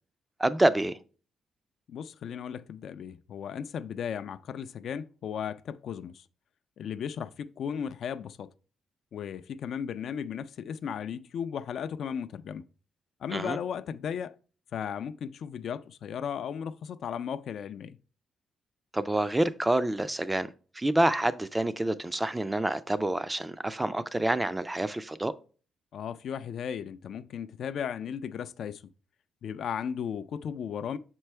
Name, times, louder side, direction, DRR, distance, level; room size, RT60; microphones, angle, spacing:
voice 1, 0.4-1.0 13.3-13.6 18.9-20.5 20.7-25.3, right 1 dB, 15° right, 0.3 m, -27 dB
voice 2, 1.9-6.2 6.8-8.5 9.1-12.6 13.2-14.3 14.7-18.0 25.9-28.8 29.4-31.0, left 8 dB, 65° left, 0.3 m, -35 dB
6.7 x 4.5 x 3.2 m
cardioid pair, 110°, 0 cm